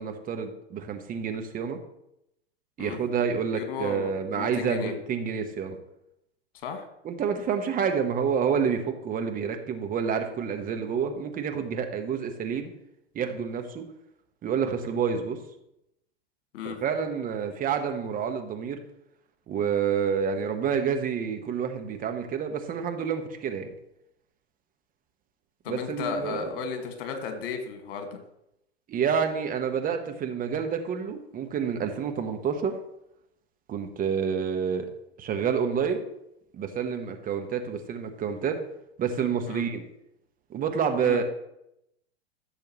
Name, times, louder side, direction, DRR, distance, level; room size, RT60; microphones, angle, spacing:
voice 1, 0.0-1.8 2.8-5.8 7.0-12.7 13.1-13.8 14.4-15.4 16.6-18.8 19.5-23.7 25.7-26.5 28.9-32.8 33.7-34.9 35.2-36.0 36.5-38.6 39.0-39.8 40.5-41.2, right 7 dB, 25° right, 6 dB, 1.1 m, -28 dB
voice 2, 3.5-4.9 6.6-6.9 16.5-16.8 25.6-28.2 39.5-39.6 41.0-41.2, left 6 dB, 60° left, 6 dB, 1.9 m, -34 dB
15.0 x 7.0 x 3.0 m, 0.81 s
figure-of-eight pair, 95°, 32 cm